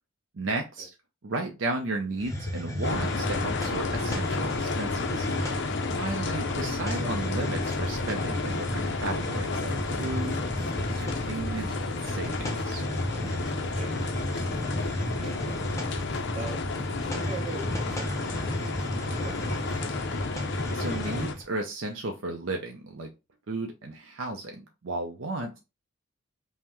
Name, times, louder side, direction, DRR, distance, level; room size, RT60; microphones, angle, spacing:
voice 1, 0.3-0.9 1.2-5.3 6.0-10.4 10.9-12.8 20.7-23.1 23.5-25.6, right 2 dB, 60° right, 3 dB, 0.5 m, -34 dB
Hiss, 2.2-21.4, left 1 dB, 15° left, 0.7 m, -33 dB
sound 1, 2.8-21.3, left 4 dB, 50° left, 0.5 m, -33 dB
sound 2, 9.7-13.7 14.0-15.5 15.8-17.2 17.6-19.0 19.3-20.3, equal, 5° right, 1.3 m, -45 dB
voice 2, 13.8-14.3 14.6-15.6 16.3-16.6 17.1-17.7 18.0-19.6, right 3 dB, 30° right, 0 dB, 1.0 m, -42 dB
5.5 x 2.1 x 3.0 m, 0.26 s
head